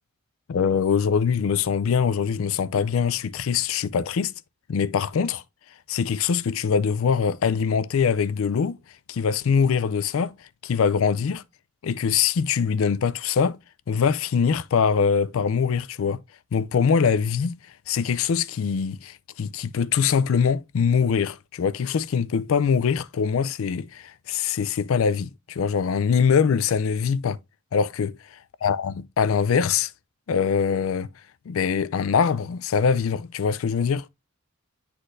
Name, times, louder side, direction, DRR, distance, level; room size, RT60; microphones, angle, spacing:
voice 1, 0.5-4.3 4.7-5.4 5.9-8.8 9.1-10.3 10.6-11.4 11.8-13.6 13.9-16.2 16.5-17.6 17.9-27.4 27.7-28.2 28.6-29.9 30.3-31.1 31.5-34.1, left 6 dB, 70° left, 0.4 m, -23 dB
9.7 x 4.2 x 2.5 m
head